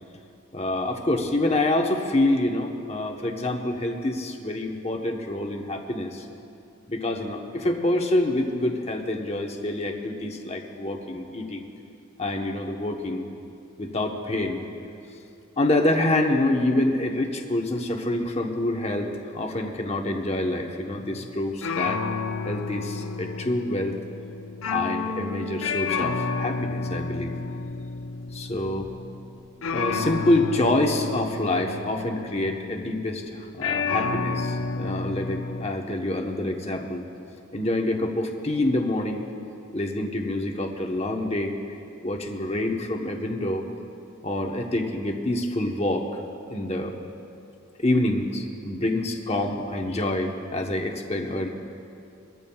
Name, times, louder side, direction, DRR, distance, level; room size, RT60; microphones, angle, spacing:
voice 1, 0.5-6.2 6.9-11.7 12.2-13.2 13.8-14.6 15.6-22.0 22.4-24.0 24.7-27.3 28.3-28.9 29.7-37.0 37.5-39.2 39.7-41.5 42.0-43.6 44.2-46.1 46.5-46.9 47.8-51.5, left 1 dB, 30° left, 2 dB, 1.0 m, -26 dB
sound 1, 21.0-21.3 21.6-33.2 33.6-35.7, left 4 dB, 75° left, 0.6 m, -31 dB
23.0 x 14.0 x 2.3 m, 2.6 s
head